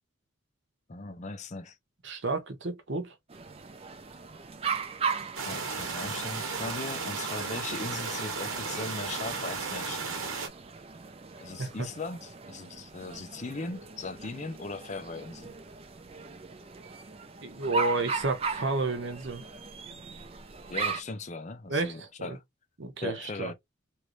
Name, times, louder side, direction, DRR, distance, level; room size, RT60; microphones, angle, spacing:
voice 1, 0.9-1.8 5.4-10.1 11.4-15.6 20.7-22.4 23.0-23.5, left 3 dB, 35° left, 0.5 m, -39 dB
voice 2, 2.0-3.1 11.6-11.7 17.4-19.4 21.7-22.4 22.8-23.5, right 3 dB, 60° right, 0.8 m, -31 dB
sound 1, 3.3-21.0, right 5 dB, 30° right, 0.4 m, -38 dB
sound 2, 5.4-10.5, right 4 dB, 90° right, 1.1 m, -34 dB
3.1 x 2.5 x 3.0 m
head